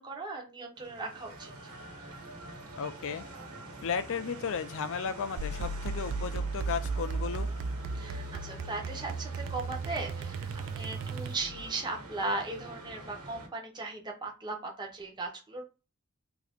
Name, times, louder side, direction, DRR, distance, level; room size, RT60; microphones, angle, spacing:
voice 1, 0.0-1.5 8.0-10.5 10.7-15.6, right 2 dB, 20° right, 0.6 m, -37 dB
sound 1, 0.8-13.5, right 2 dB, 75° right, 1.1 m, -46 dB
voice 2, 2.8-3.2 3.8-7.5, left 6 dB, 60° left, 0.4 m, -34 dB
sound 2, 5.4-11.7, right 4 dB, 60° right, 0.3 m, -35 dB
2.8 x 2.4 x 3.4 m
head